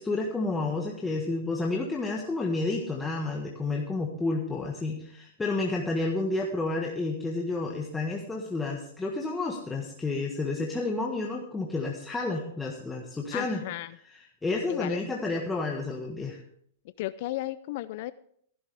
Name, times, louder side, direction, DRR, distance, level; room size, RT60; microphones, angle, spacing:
voice 1, 0.0-13.6 14.1-16.4, left 3 dB, 10° left, -1 dB, 1.5 m, -30 dB
voice 2, 13.3-14.0 14.7-15.0 17.0-18.1, left 16 dB, 55° left, 15 dB, 0.4 m, -34 dB
15.0 x 12.0 x 3.4 m, 0.64 s
hypercardioid pair, 130°, 0 cm